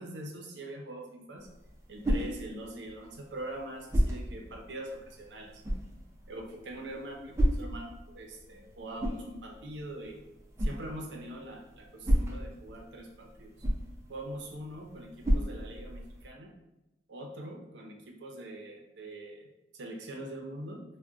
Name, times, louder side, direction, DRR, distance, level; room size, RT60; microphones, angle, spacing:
voice 1, 0.0-1.5 1.9-5.6 6.3-10.2 10.6-13.5 14.1-16.5 17.1-19.5 19.7-20.8, right 1 dB, 90° right, 1 dB, 0.6 m, -43 dB
sound 1, 1.4-16.3, equal, 15° right, 0.4 m, -34 dB
3.8 x 2.1 x 2.3 m, 0.95 s
head